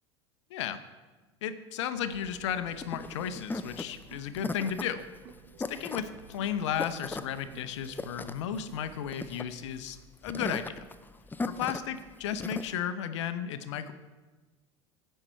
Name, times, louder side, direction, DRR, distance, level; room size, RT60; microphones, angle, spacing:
voice 1, 0.5-0.8 1.4-5.0 5.7-10.0 10.2-10.7 11.5-13.9, left 9 dB, 70° left, 11 dB, 0.7 m, -34 dB
sound 1, 1.9-9.0, right 8 dB, 60° right, 0.7 m, -54 dB
sound 2, 2.1-12.7, left 3 dB, 10° left, 0.5 m, -38 dB
16.0 x 5.6 x 4.5 m, 1.3 s
hypercardioid pair, 75°, 16 cm